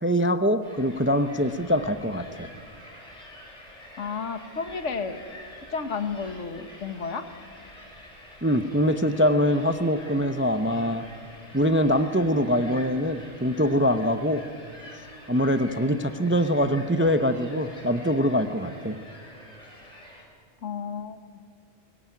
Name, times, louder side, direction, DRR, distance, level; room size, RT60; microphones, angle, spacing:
voice 1, 0.0-2.5 8.4-11.1 11.5-14.4 15.3-19.0, equal, 15° right, 10 dB, 0.5 m, -23 dB
sound 1, 0.6-20.2, left 1 dB, 30° left, 4.4 m, -47 dB
voice 2, 3.9-5.2 5.7-7.2 20.6-21.4, left 5 dB, 70° left, 9 dB, 1.6 m, -32 dB
21.5 x 19.0 x 9.3 m, 2.1 s
omnidirectional pair, 1.3 m